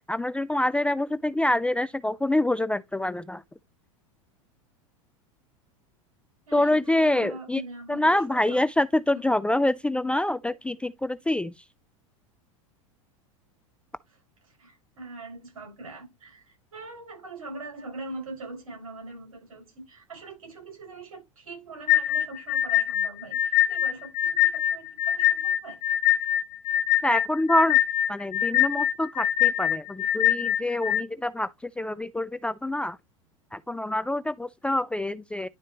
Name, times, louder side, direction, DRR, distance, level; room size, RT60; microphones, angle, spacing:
voice 1, 0.1-3.4 6.5-7.6 7.9-11.5 27.0-27.8 28.1-33.0 33.5-35.5, left 1 dB, 5° left, 0.3 m, -26 dB
voice 2, 6.5-8.7 14.5-25.8, right 2 dB, 80° right, 5.4 m, -42 dB
sound 1, 21.9-31.0, left 12 dB, 25° left, 1.8 m, -23 dB
11.0 x 4.2 x 2.9 m
hypercardioid pair, 90°, 18 cm